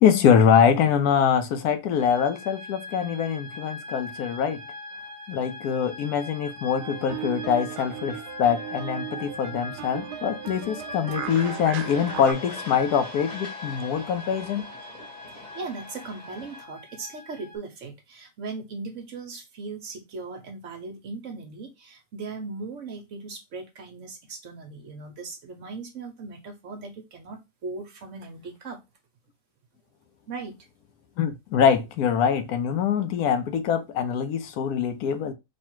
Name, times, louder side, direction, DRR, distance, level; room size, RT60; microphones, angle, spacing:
voice 1, 0.0-4.6 5.3-14.7 31.2-35.3, left 7 dB, 75° left, 1.1 m, -23 dB
sound 1, 2.0-17.6, left 3 dB, 30° right, 1.1 m, -42 dB
sound 2, 6.8-12.3, right 10 dB, 80° right, 1.1 m, -36 dB
sound 3, 11.2-16.6, left 2 dB, 30° left, 1.1 m, -42 dB
voice 2, 15.3-28.8 30.3-30.6, right 3 dB, 60° right, 1.0 m, -38 dB
3.2 x 2.4 x 4.4 m
omnidirectional pair, 1.7 m